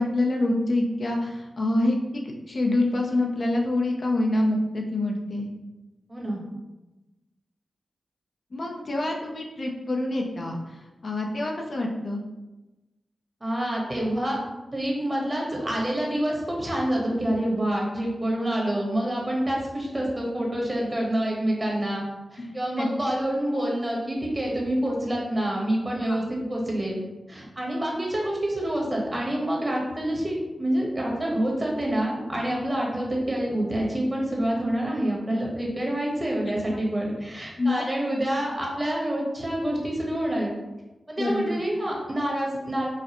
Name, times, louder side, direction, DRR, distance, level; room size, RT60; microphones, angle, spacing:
voice 1, 0.0-5.5 8.5-12.2 22.4-22.5 22.8-22.9 26.1-26.2 37.6-37.8 41.2-41.5, left 2 dB, 55° left, 0 dB, 0.6 m, -26 dB
voice 2, 6.1-6.4 13.4-14.4 14.7-22.0 22.3-27.0 27.3-40.5 41.1-42.9, right 1 dB, 30° right, -2 dB, 1.2 m, -27 dB
4.7 x 2.1 x 3.0 m, 1.1 s
cardioid pair, 55°, 0 cm